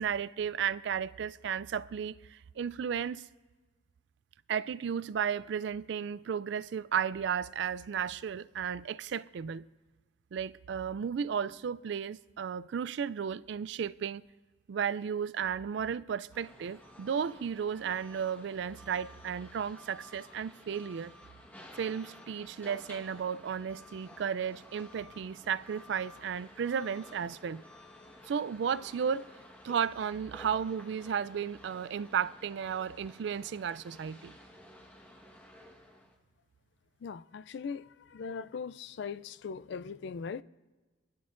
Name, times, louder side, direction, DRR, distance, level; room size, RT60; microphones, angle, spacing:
voice 1, 0.0-3.3 4.5-9.6 10.3-14.2 14.7-21.1 21.8-27.6 28.3-29.3 29.6-34.3, right 7 dB, 60° right, 0.3 m, -34 dB
sound 1, 16.3-36.2, left 1 dB, 10° left, 1.3 m, -53 dB
voice 2, 37.0-37.8 38.1-40.4, left 5 dB, 60° left, 0.3 m, -39 dB
24.0 x 11.5 x 2.6 m
head